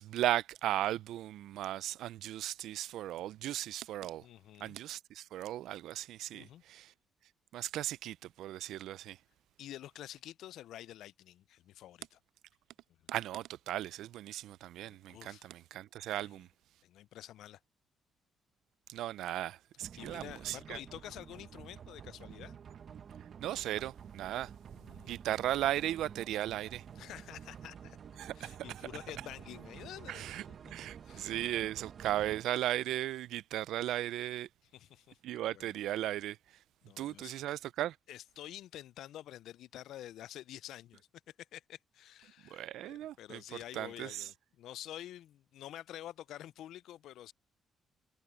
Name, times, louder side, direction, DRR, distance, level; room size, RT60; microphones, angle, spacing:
voice 1, 0.0-4.2 4.6-6.9 7.5-9.2 13.1-16.5 18.9-20.8 23.4-24.5 25.1-26.8 28.2-28.7 30.1-34.5 35.2-36.4 37.0-38.0 42.5-43.4 43.7-44.3, right 13 dB, 80° right, 0.5 m, -36 dB
voice 2, 4.2-4.8 6.3-6.6 9.6-12.2 14.8-15.5 16.2-16.4 16.8-17.6 20.0-22.6 24.7-25.2 27.0-28.0 28.4-30.3 30.6-30.7 31.0-31.5 34.7-35.7 36.8-37.3 38.1-41.1 41.5-47.3, left 12 dB, 80° left, 0.4 m, -49 dB
sound 1, 19.8-32.4, right 7 dB, 55° right, 1.0 m, -50 dB
cardioid pair, 80°, 0 cm